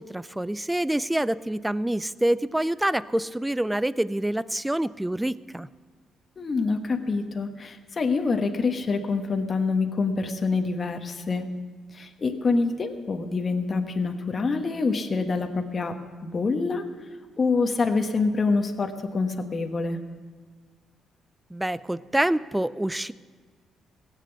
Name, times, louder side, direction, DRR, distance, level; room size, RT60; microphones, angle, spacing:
voice 1, 0.0-5.7 21.5-23.1, right 1 dB, 5° right, 17 dB, 0.4 m, -26 dB
voice 2, 6.4-11.5 11.9-15.9 16.2-16.8 17.4-20.0, left 4 dB, 40° left, 5 dB, 1.2 m, -26 dB
16.5 x 7.6 x 8.0 m, 1.5 s
cardioid pair, 90°, 0 cm